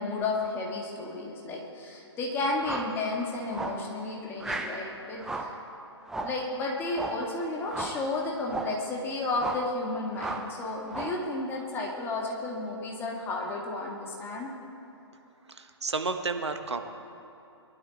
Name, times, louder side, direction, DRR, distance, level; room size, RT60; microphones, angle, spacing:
voice 1, 0.0-5.5 6.2-14.5, left 2 dB, 15° left, -1 dB, 2.1 m, -32 dB
sound 1, 2.6-3.0 3.5-3.9 4.4-4.8 5.2-5.6 6.1-6.4 6.9-7.3 7.7-8.0 8.4-8.8 9.3-9.7 10.2-10.5 10.9-11.3, right 2 dB, 5° right, 0.7 m, -35 dB
voice 2, 15.5-16.8, right 4 dB, 70° right, 7 dB, 1.3 m, -31 dB
22.5 x 12.0 x 4.1 m, 2.9 s
figure-of-eight pair, 130°, 15 cm